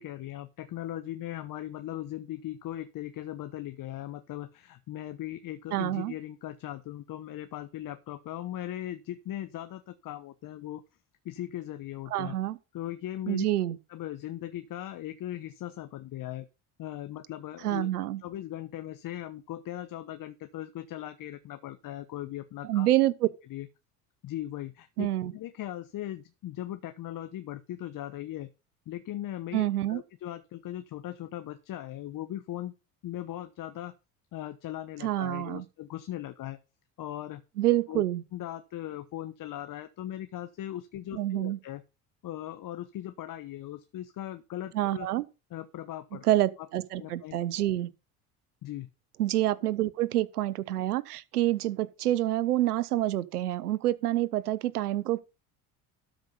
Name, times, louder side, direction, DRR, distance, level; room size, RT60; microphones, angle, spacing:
voice 1, 0.0-10.8 11.2-12.4 12.7-13.4 13.9-16.5 16.8-17.9 18.2-22.9 23.5-23.7 24.2-28.5 28.9-32.7 33.0-33.9 34.3-36.6 37.0-37.4 37.9-38.0 38.3-41.8 42.2-45.1 45.5-46.4 47.0-47.4 48.6-48.9, left 13 dB, 45° left, 1.1 m, -39 dB
voice 2, 5.7-6.1 12.1-12.6 13.3-13.8 17.6-18.2 22.6-23.3 25.0-25.3 29.5-30.0 35.0-35.6 37.6-38.2 41.1-41.6 44.7-45.2 46.2-47.9 49.2-55.2, right 14 dB, 90° right, 0.8 m, -27 dB
12.5 x 5.1 x 5.4 m
hypercardioid pair, 70°, 44 cm